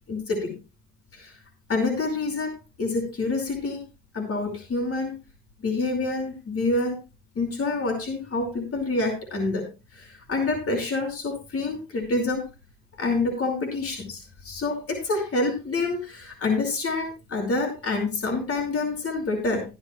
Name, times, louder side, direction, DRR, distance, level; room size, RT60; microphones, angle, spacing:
voice 1, 0.1-0.5 1.1-1.3 1.7-2.5 2.8-3.8 4.1-5.1 5.6-7.0 7.3-9.7 9.9-12.4 13.0-19.6, left 3 dB, 50° left, 3 dB, 5.1 m, -27 dB
16.0 x 11.5 x 2.3 m, 0.29 s
cardioid pair, 90°, 30 cm